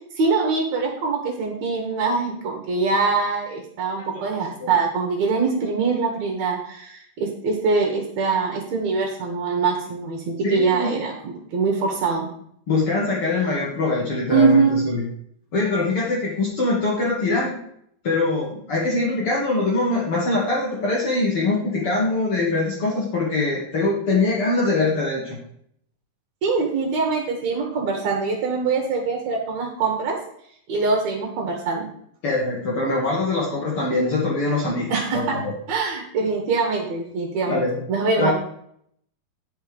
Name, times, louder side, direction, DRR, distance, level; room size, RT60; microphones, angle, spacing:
voice 1, 0.1-12.3 14.3-14.8 26.4-30.2 30.7-31.9 34.9-35.4 35.7-37.6 37.9-38.3, right 4 dB, 60° right, 1 dB, 2.3 m, -23 dB
voice 2, 10.4-10.9 12.7-15.0 15.5-17.6 18.0-25.4 32.2-35.5 37.5-37.7 38.2-38.3, left 2 dB, 45° left, -4 dB, 2.3 m, -23 dB
10.0 x 5.7 x 5.1 m, 0.69 s
omnidirectional pair, 4.0 m